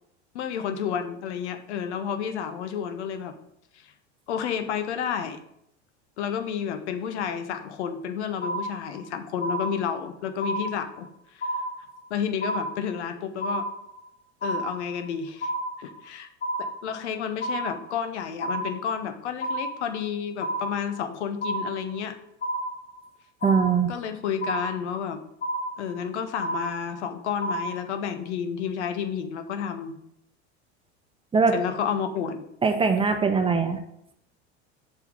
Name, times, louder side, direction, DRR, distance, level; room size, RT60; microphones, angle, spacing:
voice 1, 0.3-3.4 3.7-3.9 4.3-5.4 6.2-11.5 12.1-13.7 14.4-15.5 15.8-16.3 16.6-22.2 23.9-25.2 25.8-30.0 31.5-32.4, left 7 dB, 80° left, 8 dB, 1.0 m, -31 dB
sound 1, 8.4-9.1 9.4-10.1 10.4-11.1 11.4-12.1 12.4-13.1 13.4-14.1 14.4-15.1 15.4-16.1 16.4-17.1 17.4-18.1 18.4-19.1 19.4-20.1 20.4-21.1 21.4-22.1 22.4-23.1 23.4-24.1 24.4-25.1 25.4-26.1 26.4-27.1 27.4-28.1, right 1 dB, 30° left, 1.8 m, -31 dB
voice 2, 23.4-23.9 31.3-31.5 32.6-33.8, right 5 dB, 15° right, 7 dB, 0.8 m, -21 dB
5.8 x 4.7 x 5.3 m, 0.77 s
hypercardioid pair, 100°, 34 cm